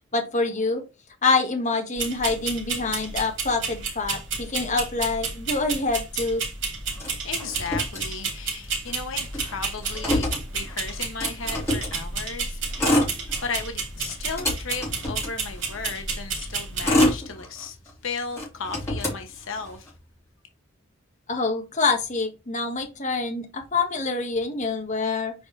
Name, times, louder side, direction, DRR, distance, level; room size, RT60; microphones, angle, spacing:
voice 1, 0.1-0.8 1.2-6.4 21.3-25.3, left 3 dB, 35° left, 1.4 m, -26 dB
sound 1, 2.0-17.1, right 4 dB, 55° right, 2.7 m, -31 dB
Motor vehicle (road), 7.0-8.6 8.9-9.0 9.2-12.0 12.6-13.7 14.1-15.9 16.5-17.9 18.3-19.9, left 1 dB, 15° left, 3.1 m, -27 dB
voice 2, 7.2-10.3 10.5-13.0 13.4-17.8 18.0-19.9, left 5 dB, 65° left, 1.0 m, -35 dB
7.1 x 4.7 x 3.2 m
head